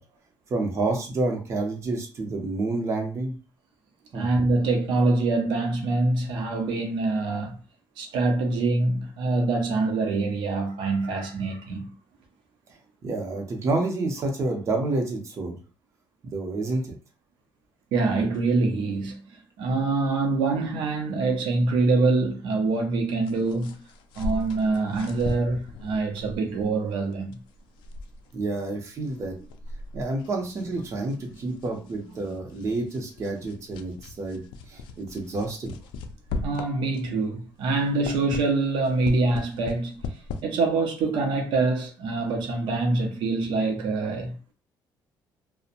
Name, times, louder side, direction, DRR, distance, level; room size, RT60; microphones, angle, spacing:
voice 1, 0.5-3.4 4.1-4.3 13.0-15.5 16.2-16.8 28.3-29.3 29.9-34.4 34.7-35.7, right 2 dB, 40° right, 0.7 m, -29 dB
voice 2, 4.1-7.5 8.0-11.9 17.9-23.7 24.2-27.4 36.3-40.0 40.4-44.5, right 3 dB, 80° right, 0.6 m, -25 dB
sound 1, 23.2-37.2 37.6-40.4, left 3 dB, 90° left, 0.3 m, -39 dB
2.7 x 2.1 x 2.5 m
cardioid pair, 125°, 8 cm